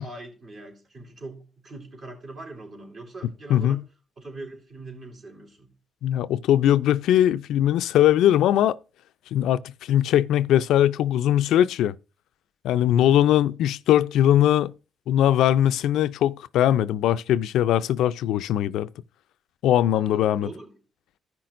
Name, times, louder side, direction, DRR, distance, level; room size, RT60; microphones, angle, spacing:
voice 1, 0.0-3.8 4.2-5.7 13.0-13.4 19.9-20.7, right 2 dB, 50° right, 3.5 m, -42 dB
voice 2, 3.5-3.8 6.0-8.8 9.3-11.9 12.6-14.7 15.1-18.9 19.6-20.5, left 11 dB, 85° left, 0.3 m, -20 dB
15.0 x 5.9 x 2.5 m
cardioid pair, 90°, 0 cm